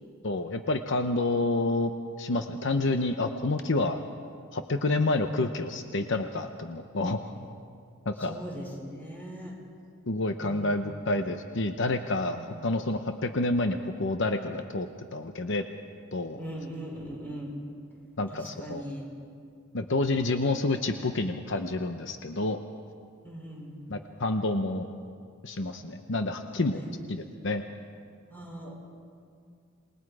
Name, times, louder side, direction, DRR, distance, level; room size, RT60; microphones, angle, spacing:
voice 1, 0.2-1.9 2.2-4.0 4.5-7.3 8.1-8.4 10.1-15.6 16.1-16.4 18.2-18.8 19.7-22.6 23.9-24.9 25.4-27.6, left 2 dB, 60° left, 7 dB, 0.9 m, -29 dB
voice 2, 8.2-9.5 10.4-11.0 12.3-12.6 16.4-17.5 18.3-19.0 23.2-23.8 26.7-27.0 28.3-28.7, right 1 dB, 10° left, -2 dB, 5.0 m, -40 dB
28.0 x 20.5 x 4.8 m, 2.3 s
head